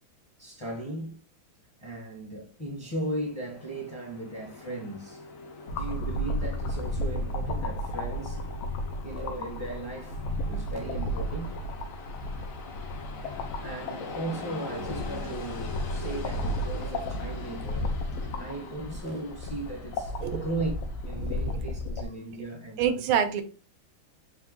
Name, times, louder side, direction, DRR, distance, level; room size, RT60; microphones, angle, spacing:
voice 1, 0.4-1.2 1.8-5.3 5.7-8.4 9.0-11.6 13.6-17.9 18.4-20.7 21.0-22.9, right 2 dB, 25° left, 0.5 m, -37 dB
Train, 3.1-21.8, left 4 dB, 65° left, 0.8 m, -44 dB
sound 1, 5.7-22.0, left 1 dB, 85° left, 1.5 m, -33 dB
voice 2, 21.2-21.6 22.8-23.4, right 8 dB, 85° right, 1.5 m, -27 dB
4.3 x 2.6 x 3.7 m
omnidirectional pair, 2.2 m